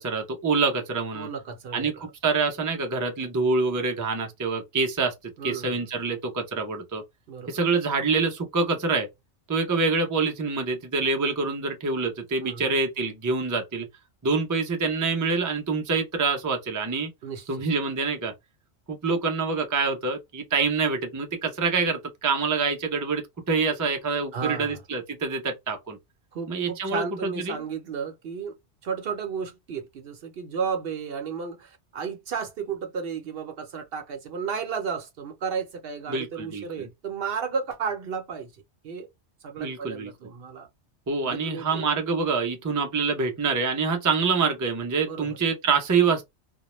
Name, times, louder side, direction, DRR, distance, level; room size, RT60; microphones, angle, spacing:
voice 1, 0.0-1.3 1.7-5.1 5.4-7.0 7.5-9.1 9.5-13.9 14.2-17.1 17.5-18.3 18.9-26.0 26.5-27.6 36.1-36.9 39.6-40.1 41.1-46.2, right 4 dB, 25° right, 0.4 m, -26 dB
voice 2, 1.1-2.1 5.4-5.9 7.3-7.6 12.4-12.7 17.2-17.5 24.3-24.8 26.3-28.5 28.8-38.5 38.8-39.1 39.4-40.7 41.2-41.9 45.1-45.4, right 6 dB, 60° right, 0.8 m, -33 dB
2.1 x 2.0 x 2.9 m
omnidirectional pair, 1.2 m